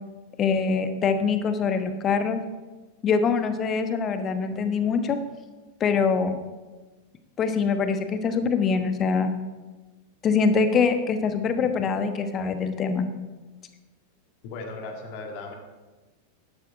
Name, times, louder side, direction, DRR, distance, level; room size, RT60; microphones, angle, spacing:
voice 1, 0.4-2.4 3.0-5.2 5.8-6.4 7.4-9.3 10.2-13.1, left 5 dB, 30° left, 8 dB, 1.2 m, -24 dB
voice 2, 14.4-15.5, left 3 dB, 45° left, 2 dB, 1.9 m, -36 dB
12.0 x 12.0 x 4.7 m, 1.2 s
figure-of-eight pair, 90°, 0 cm